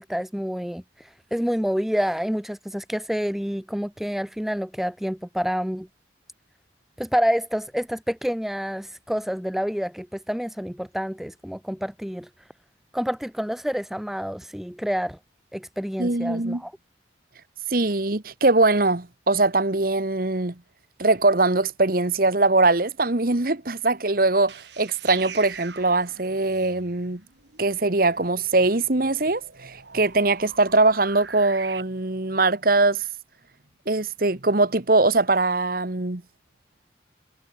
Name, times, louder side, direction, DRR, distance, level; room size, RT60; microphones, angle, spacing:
voice 1, 0.0-5.9 7.0-12.3 12.9-15.2 15.5-16.7, equal, ahead, 0.4 m, -28 dB
voice 2, 16.0-16.6 17.7-20.5 21.0-27.2 27.6-33.0 33.9-36.2, right 2 dB, 50° right, 1.4 m, -22 dB
sound 1, 24.3-31.8, right 6 dB, 70° right, 4.0 m, -44 dB
head